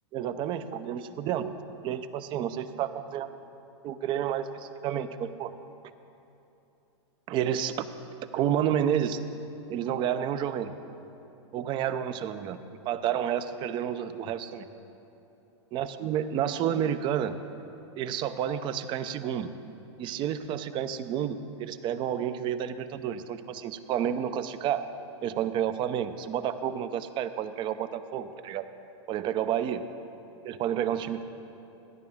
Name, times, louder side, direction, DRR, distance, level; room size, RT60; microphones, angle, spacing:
voice 1, 0.1-1.5 1.8-3.4 3.8-5.5 7.3-7.9 8.3-9.2 9.7-10.7 11.5-14.7 15.7-17.4 18.0-19.5 20.0-24.9 25.2-28.7 29.1-29.8 30.4-31.2, right 9 dB, 30° right, 11 dB, 0.6 m, -30 dB
16.0 x 10.5 x 3.6 m, 2.9 s
hypercardioid pair, 125°, 15 cm